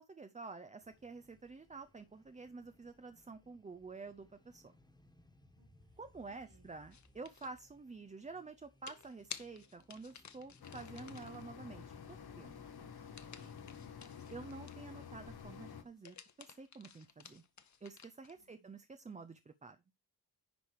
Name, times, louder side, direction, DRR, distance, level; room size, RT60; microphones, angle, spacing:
voice 1, 0.0-4.7 6.0-12.6 14.3-17.4 17.8-19.8, right 4 dB, 20° right, 0.4 m, -50 dB
sound 1, 0.8-16.1, left 1 dB, 10° left, 1.4 m, -67 dB
voice 2, 5.6-6.7 12.5-13.9 18.3-18.7, right 2 dB, 55° right, 3.2 m, -69 dB
sound 2, 6.9-7.6 8.9-11.4 13.2-14.9 15.9-18.4, left 7 dB, 50° left, 0.9 m, -53 dB
sound 3, 10.6-15.8, left 7 dB, 75° left, 1.2 m, -50 dB
10.5 x 4.7 x 4.5 m
wide cardioid pair, 155°, 38 cm